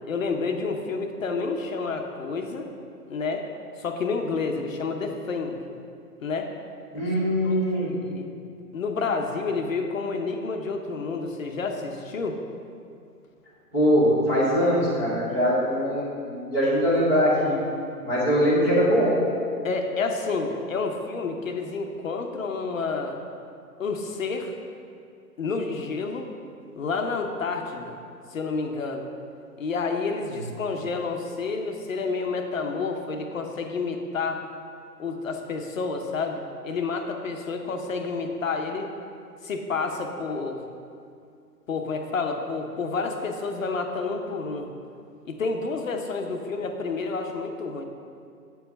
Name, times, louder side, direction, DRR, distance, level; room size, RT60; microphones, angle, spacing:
voice 1, 0.1-2.7 3.1-3.4 3.8-5.7 6.2-6.5 7.4-8.3 8.7-12.4 19.6-23.2 23.8-24.6 25.4-26.3 26.7-28.0 28.3-29.1 29.6-34.4 35.0-38.9 39.4-40.6 41.7-44.7 45.2-47.8, left 4 dB, 55° left, 4 dB, 0.8 m, -29 dB
voice 2, 6.9-7.9 13.7-17.6 18.0-19.2, equal, 10° right, -12 dB, 0.6 m, -22 dB
8.1 x 4.6 x 5.6 m, 2.4 s
hypercardioid pair, 150°, 49 cm